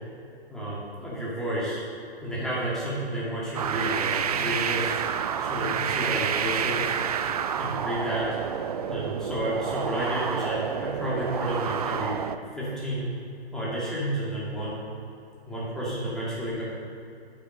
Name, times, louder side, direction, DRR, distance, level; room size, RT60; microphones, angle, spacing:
voice 1, 0.5-1.8 2.2-5.0 5.4-6.9 7.6-8.3 8.9-12.1 12.6-13.1 13.5-14.8 15.5-16.6, right 1 dB, ahead, -9 dB, 2.3 m, -31 dB
sound 1, 3.5-12.4, right 8 dB, 40° right, 0.4 m, -29 dB
8.6 x 7.9 x 5.2 m, 2.7 s
hypercardioid pair, 140°, 32 cm